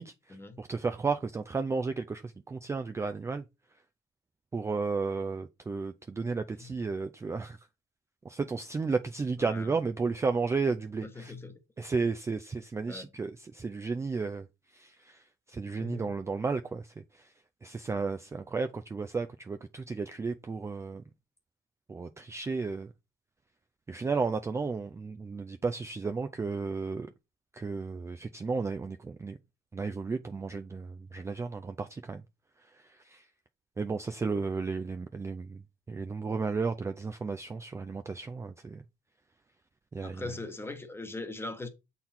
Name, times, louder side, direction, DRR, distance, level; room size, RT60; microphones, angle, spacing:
voice 1, 0.6-3.4 4.5-7.6 8.2-11.3 11.8-14.5 14.7-15.2 15.5-16.9 17.6-21.0 21.9-22.9 23.9-27.1 27.5-29.4 29.7-32.2 33.1-33.2 33.8-35.6 35.9-38.8 39.9-40.3, right 4 dB, 15° right, 0.4 m, -33 dB
voice 2, 9.4-9.8 11.0-11.5 12.9-13.1 15.8-16.2 39.9-41.7, left 2 dB, 15° left, 1.1 m, -41 dB
7.0 x 4.0 x 4.2 m
cardioid pair, 110°, 17 cm